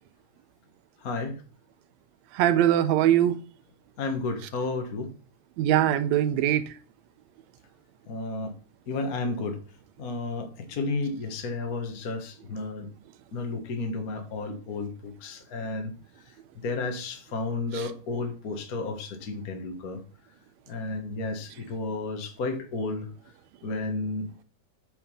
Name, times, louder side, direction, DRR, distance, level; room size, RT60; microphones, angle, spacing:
voice 1, 1.0-1.4 4.0-5.1 8.1-8.5 8.9-9.6 10.0-12.9 13.3-15.9 16.5-20.0 20.7-23.1 23.6-24.4, left 3 dB, 45° left, 1.3 m, -32 dB
voice 2, 2.4-3.4 5.6-6.6 17.7-17.8, right 11 dB, 80° right, 1.7 m, -21 dB
8.0 x 5.8 x 5.6 m
omnidirectional pair, 3.5 m